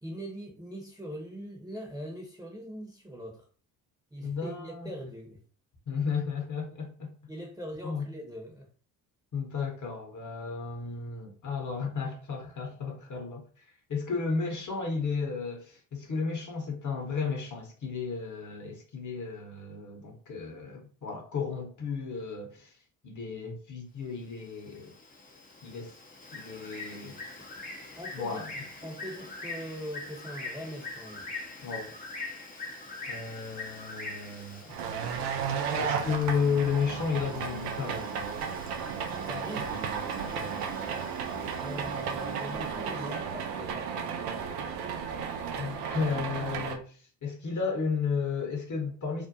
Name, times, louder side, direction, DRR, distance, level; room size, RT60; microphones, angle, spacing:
voice 1, 0.0-3.5 4.1-5.4 7.3-8.7 27.4-27.5 28.0-31.3 39.1-39.9 41.6-44.7, equal, 10° right, 0.8 m, -42 dB
voice 2, 4.2-4.9 5.9-7.1 7.8-8.1 9.3-22.8 23.0-24.9 25.6-25.9 26.3-27.2 28.1-28.5 31.6-31.9 33.1-34.7 35.7-38.3 40.3-40.6 45.6-49.3, left 5 dB, 40° left, 0.9 m, -33 dB
Bird, 24.2-43.0, left 3 dB, 20° left, 0.5 m, -44 dB
sound 1, 34.7-46.7, right 6 dB, 80° right, 0.6 m, -34 dB
2.5 x 2.1 x 2.7 m
hypercardioid pair, 50°, 48 cm